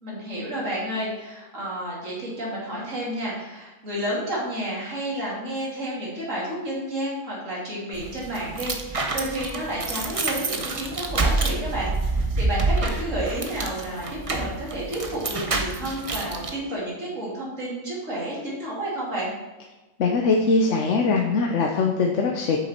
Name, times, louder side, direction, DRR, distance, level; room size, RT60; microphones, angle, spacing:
voice 1, 0.0-19.3, right 1 dB, 90° right, -6 dB, 3.2 m, -31 dB
sound 1, 7.9-16.5, right 3 dB, 30° right, 0.8 m, -27 dB
voice 2, 20.0-22.6, left 3 dB, 75° left, 1 dB, 1.2 m, -21 dB
8.1 x 6.9 x 4.4 m, 1.1 s
omnidirectional pair, 1.3 m